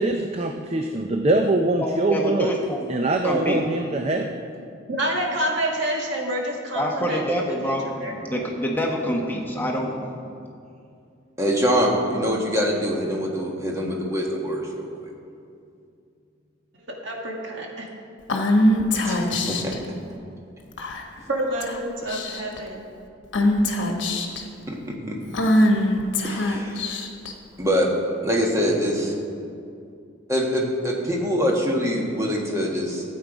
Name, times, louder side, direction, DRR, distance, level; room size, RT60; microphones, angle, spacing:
voice 1, 0.0-2.5 2.9-4.4, right 2 dB, 30° right, 4 dB, 0.5 m, -23 dB
voice 2, 1.8-2.9 3.2-3.6 6.7-10.3, equal, 10° left, -1 dB, 1.1 m, -26 dB
voice 3, 4.9-8.1 16.9-17.9 21.3-22.8, right 1 dB, 65° right, -1 dB, 1.9 m, -28 dB
voice 4, 11.4-15.1 19.0-19.7 24.2-24.4 24.7-25.2 26.2-26.9 27.6-27.9 28.2-29.1 30.3-33.0, equal, 15° right, -1 dB, 1.4 m, -24 dB
Female speech woman speaking / Whispering, 18.3-19.8 20.8-21.2 21.6-21.8 22.1-22.6 23.3-24.4 25.3-27.3, left 1 dB, 65° left, 1.2 m, -22 dB
14.5 x 8.4 x 5.0 m, 2.5 s
head